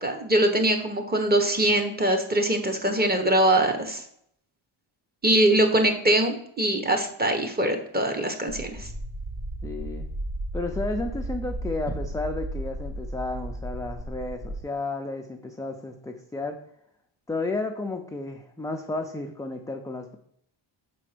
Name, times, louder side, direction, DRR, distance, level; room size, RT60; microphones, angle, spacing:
voice 1, 0.0-4.0 5.2-8.9, right 1 dB, 20° right, 4 dB, 1.0 m, -23 dB
sound 1, 8.5-14.6, right 1 dB, 40° right, 3.0 m, -34 dB
voice 2, 9.6-10.1 10.5-16.6 17.3-20.2, left 2 dB, 10° left, 3 dB, 0.4 m, -32 dB
6.1 x 4.3 x 5.0 m, 0.69 s
cardioid pair, 115°, 49 cm